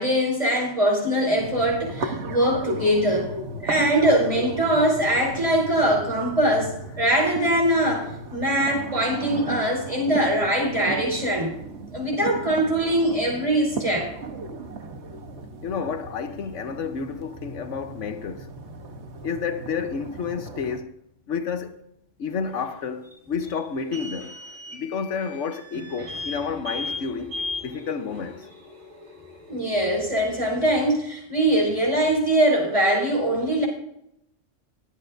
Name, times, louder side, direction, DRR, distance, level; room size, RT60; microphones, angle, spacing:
voice 1, 0.0-3.3 3.6-11.6 11.9-14.1 29.5-33.7, right 1 dB, 30° right, 5.0 m, -22 dB
sound 1, 1.4-20.8, right 2 dB, 65° right, 1.4 m, -35 dB
voice 2, 15.6-18.5 19.2-20.9 21.3-21.8 22.2-24.5 24.7-27.4 27.6-28.5, left 6 dB, 80° left, 1.2 m, -30 dB
sound 2, 22.5-29.7, left 3 dB, 45° right, 3.5 m, -37 dB
22.5 x 8.3 x 2.6 m
omnidirectional pair, 1.3 m